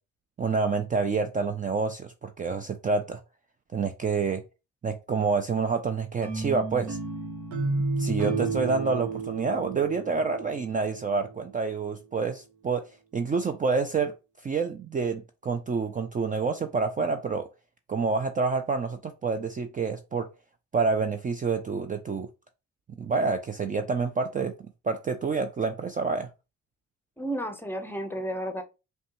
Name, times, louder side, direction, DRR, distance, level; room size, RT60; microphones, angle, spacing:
voice 1, 0.4-3.2 3.7-4.4 4.8-7.0 8.0-12.9 13.1-14.1 14.4-17.5 17.9-20.3 20.7-22.3 23.0-24.5 24.8-26.3, right 4 dB, 25° right, 0.4 m, -28 dB
sound 1, 6.2-11.3, right 3 dB, 75° right, 1.0 m, -31 dB
voice 2, 27.2-28.6, right 1 dB, 5° left, 0.8 m, -32 dB
5.2 x 2.3 x 3.0 m
cardioid pair, 90°, 30 cm